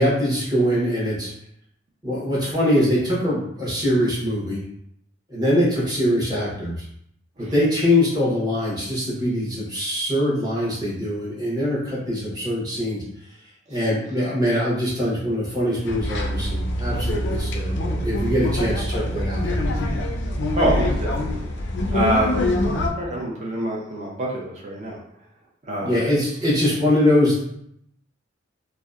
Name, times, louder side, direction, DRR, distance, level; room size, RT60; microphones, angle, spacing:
voice 1, 0.0-1.3 2.0-4.6 5.3-6.8 7.4-13.0 13.7-19.8 25.8-27.4, left 1 dB, 20° right, -7 dB, 0.9 m, -23 dB
sound 1, 15.9-22.9, left 2 dB, 65° left, 0.4 m, -26 dB
Piano, 16.0-21.1, right 2 dB, 65° right, 1.2 m, -29 dB
voice 2, 20.5-21.4 21.9-25.0 25.6-26.1, right 1 dB, 35° right, -3 dB, 0.5 m, -26 dB
2.6 x 2.1 x 2.3 m, 0.72 s
head